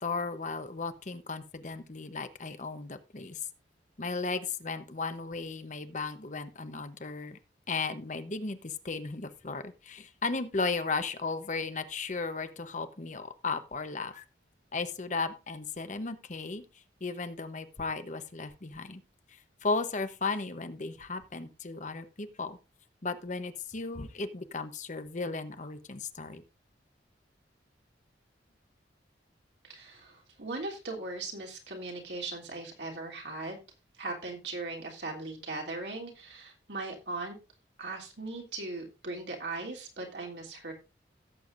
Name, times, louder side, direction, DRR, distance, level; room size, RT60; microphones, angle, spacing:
voice 1, 0.0-3.4 4.0-7.4 7.7-14.2 14.7-16.6 17.0-19.0 19.6-22.6 23.0-26.4, left 4 dB, 40° left, 9 dB, 0.9 m, -35 dB
voice 2, 29.6-33.6 34.0-37.4 37.8-40.7, right 3 dB, 65° right, 0 dB, 3.3 m, -39 dB
16.5 x 7.9 x 2.6 m, 0.29 s
head